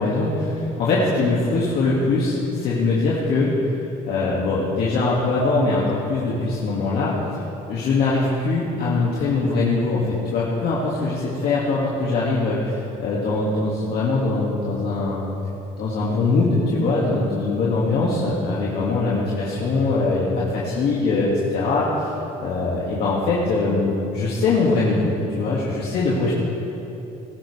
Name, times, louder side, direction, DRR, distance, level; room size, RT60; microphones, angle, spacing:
voice 1, 0.0-3.5 4.1-7.4 7.7-15.2 15.8-22.1 22.4-26.3, left 3 dB, 70° left, -6 dB, 2.1 m, -22 dB
20.0 x 12.0 x 3.3 m, 3.0 s
cardioid pair, 110°, 17 cm